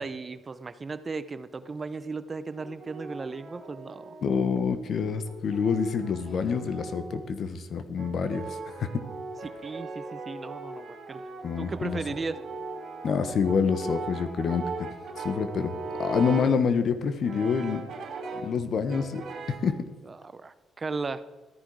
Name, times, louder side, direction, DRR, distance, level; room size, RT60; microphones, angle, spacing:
voice 1, 0.0-4.2 9.4-11.3 11.6-12.4 20.1-21.2, right 4 dB, 30° right, 13 dB, 0.7 m, -36 dB
Brass instrument, 2.6-4.5 5.3-7.3 8.0-16.6 17.2-18.6 18.9-19.7, right 3 dB, 65° right, 2.2 m, -39 dB
voice 2, 4.2-9.0 11.4-12.0 13.0-14.9 15.1-17.8 18.4-19.2 19.6-19.8, left 6 dB, 60° left, 11 dB, 1.2 m, -27 dB
13.5 x 10.0 x 4.8 m, 1.2 s
cardioid pair, 90°, 0 cm